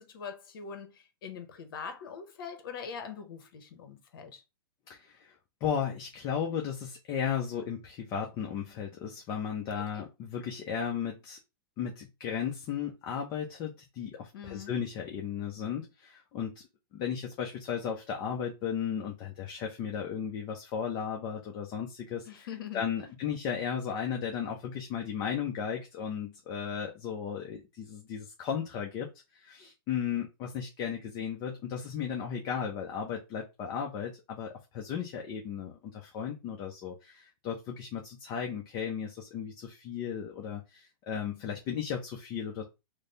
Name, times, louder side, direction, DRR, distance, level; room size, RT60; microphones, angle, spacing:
voice 1, 0.0-4.4 9.9-10.0 14.3-14.7 22.3-23.1, left 6 dB, 65° left, 1.0 m, -43 dB
voice 2, 4.9-5.3 5.6-11.4 11.8-16.7 16.9-22.5 22.7-42.6, left 7 dB, 35° left, 0.8 m, -35 dB
3.2 x 2.2 x 4.1 m
hypercardioid pair, 135°, 12 cm